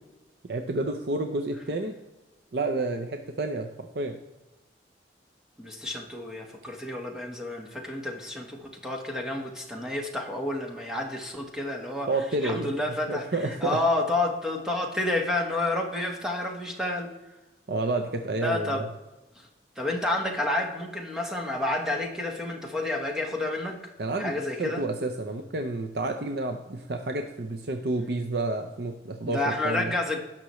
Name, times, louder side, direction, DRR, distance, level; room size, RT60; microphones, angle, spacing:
voice 1, 0.4-1.9 2.5-4.2 12.1-12.7 13.1-13.8 17.7-18.8 24.0-29.9, right 2 dB, 60° right, 5 dB, 0.7 m, -30 dB
voice 2, 5.6-12.1 12.4-17.1 18.4-18.8 19.8-23.8 24.2-24.8 29.2-30.2, left 2 dB, 5° right, 1 dB, 1.4 m, -30 dB
18.0 x 6.0 x 3.1 m, 1.0 s
head